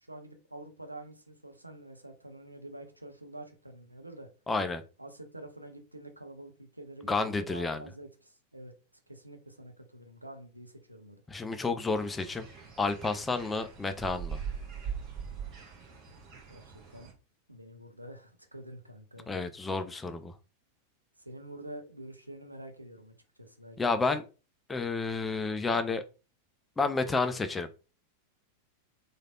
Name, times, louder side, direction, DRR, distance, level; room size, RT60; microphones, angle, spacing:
voice 1, 0.1-4.3 5.0-8.7 9.1-11.2 16.5-17.1 17.5-19.3 21.2-23.8 24.1-24.2, right 1 dB, 85° right, 5 dB, 0.5 m, -47 dB
voice 2, 4.5-4.8 7.1-7.8 11.3-12.5 12.8-14.4 19.3-20.3 23.8-24.2 24.7-26.0 26.8-27.7, left 3 dB, 15° left, 8 dB, 0.4 m, -30 dB
sound 1, 12.0-17.1, right 7 dB, 35° right, 0.9 m, -42 dB
3.2 x 2.4 x 2.3 m, 0.32 s
figure-of-eight pair, 90°, 0 cm